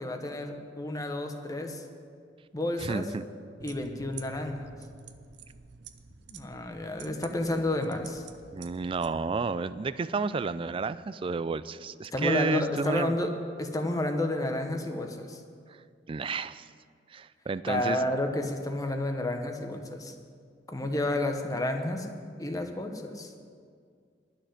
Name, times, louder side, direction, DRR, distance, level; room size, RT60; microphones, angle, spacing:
voice 1, 0.0-1.8 2.5-3.1 3.6-4.7 6.3-8.3 12.1-13.3 13.6-15.4 17.7-20.1 20.7-22.1 22.4-23.3, left 1 dB, 20° left, 5 dB, 1.0 m, -31 dB
voice 2, 2.8-3.2 8.5-13.1 16.1-16.7 17.1-18.0, right 4 dB, 30° right, 15 dB, 0.3 m, -31 dB
sound 1, 3.6-9.1, right 5 dB, 65° right, 0.7 m, -48 dB
11.5 x 6.6 x 9.5 m, 2.1 s
head